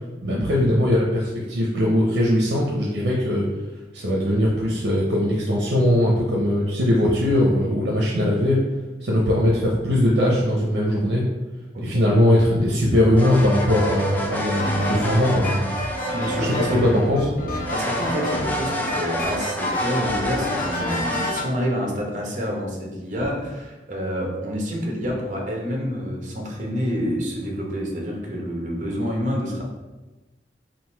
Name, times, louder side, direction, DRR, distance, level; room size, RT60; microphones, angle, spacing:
voice 1, 0.2-3.5 3.9-8.6 9.0-11.2 11.8-15.8 16.4-16.7 16.9-17.2, left 1 dB, 80° right, -3 dB, 0.6 m, -20 dB
voice 2, 11.7-12.0 16.1-16.8 17.7-29.6, equal, 45° right, -1 dB, 0.9 m, -28 dB
sound 1, 13.2-17.3 17.6-21.3, equal, 10° left, 0.4 m, -29 dB
sound 2, 14.6-21.5, left 1 dB, 50° left, 0.7 m, -29 dB
3.8 x 2.5 x 4.4 m, 1.2 s
head